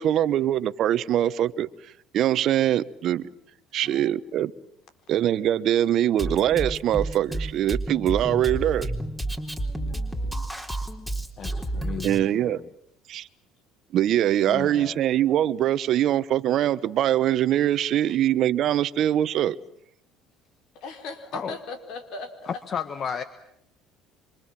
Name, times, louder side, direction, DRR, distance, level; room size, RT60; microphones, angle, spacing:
voice 1, 0.0-1.7 2.1-3.3 3.7-4.5 5.1-8.9 12.0-12.6 13.1-13.3 13.9-19.6, right 11 dB, 60° right, 15 dB, 1.1 m, -23 dB
voice 2, 3.9-4.3 9.5-10.5 11.4-11.7 20.7-22.5 23.1-23.2, left 3 dB, 65° left, 7 dB, 4.5 m, -40 dB
Drum kit, 6.2-12.2, right 1 dB, 5° left, 4.0 m, -31 dB
voice 3, 11.4-12.6 14.5-15.0 18.1-18.2 21.3-21.6 22.5-23.2, left 7 dB, 45° left, 11 dB, 1.4 m, -34 dB
27.0 x 25.5 x 7.6 m, 0.74 s
supercardioid pair, 80°, 0 cm